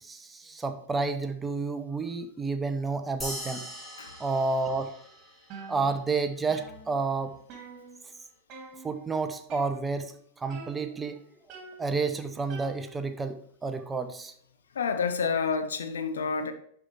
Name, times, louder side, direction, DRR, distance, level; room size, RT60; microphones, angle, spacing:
voice 1, 0.0-3.6 4.2-4.9 5.7-7.4 8.8-10.1 10.4-11.2 11.8-14.3, right 4 dB, 15° right, 0.8 m, -30 dB
sound 1, 3.2-6.0, equal, 5° left, 1.8 m, -41 dB
sound 2, 5.5-6.2 6.5-8.2 8.5-9.1 9.5-10.2 10.5-11.1 11.5-13.2, right 4 dB, 35° right, 2.3 m, -47 dB
voice 2, 14.7-16.5, left 5 dB, 65° left, 0.8 m, -29 dB
11.0 x 4.6 x 3.3 m
figure-of-eight pair, 90°, 0 cm